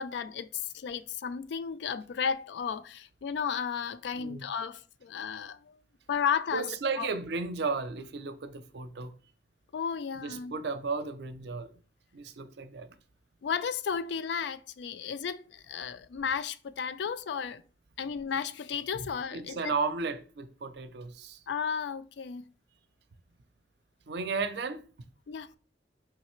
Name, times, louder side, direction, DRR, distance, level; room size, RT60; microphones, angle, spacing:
voice 1, 0.0-5.6 6.1-6.7 7.0-7.1 9.7-10.5 13.4-17.6 18.0-19.6 21.5-22.4 25.3-25.5, left 7 dB, 65° left, 0.3 m, -33 dB
voice 2, 4.1-4.4 6.5-9.1 10.1-11.8 12.1-13.0 18.9-21.4 24.1-24.8, right 4 dB, 65° right, 0.5 m, -34 dB
4.9 x 3.1 x 3.0 m
head